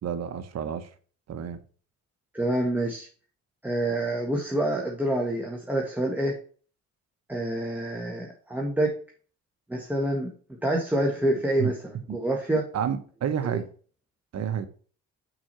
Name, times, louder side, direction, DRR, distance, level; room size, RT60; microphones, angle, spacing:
voice 1, 0.0-0.9 1.3-1.6 11.6-11.7 12.7-13.7 14.3-14.7, right 8 dB, 60° right, 1.1 m, -29 dB
voice 2, 2.3-3.1 3.6-6.4 7.3-8.9 9.7-10.3 10.6-12.7 13.4-13.6, right 1 dB, 5° right, 1.6 m, -27 dB
6.1 x 5.0 x 5.6 m
cardioid pair, 90°, 30 cm